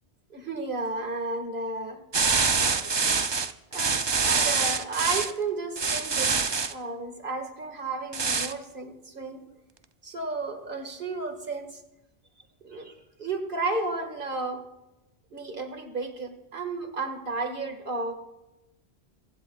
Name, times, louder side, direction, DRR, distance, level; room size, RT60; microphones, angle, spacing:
voice 1, 0.3-2.0 2.7-3.1 3.7-6.4 6.7-9.5 10.0-11.8 12.6-14.6 15.3-18.1, right 3 dB, 55° right, 6 dB, 2.0 m, -33 dB
sound 1, 2.1-5.3 5.8-6.7 8.1-8.5, right 4 dB, 35° right, 0.5 m, -25 dB
29.5 x 16.0 x 2.4 m, 0.96 s
omnidirectional pair, 1.1 m